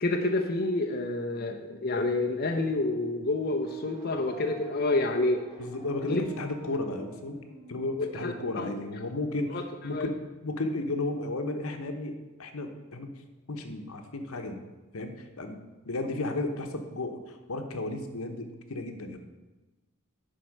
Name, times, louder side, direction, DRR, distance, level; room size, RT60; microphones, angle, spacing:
voice 1, 0.0-5.4 6.0-6.2 8.0-8.8 9.5-9.6 9.9-10.1, left 2 dB, 45° left, 2 dB, 0.7 m, -28 dB
sound 1, 3.5-7.9, right 1 dB, 45° right, 2.9 m, -48 dB
voice 2, 5.6-7.4 7.7-10.1 10.4-13.1 13.5-14.6 14.9-19.2, left 2 dB, 80° left, 6 dB, 1.0 m, -34 dB
10.5 x 4.6 x 6.5 m, 1.2 s
head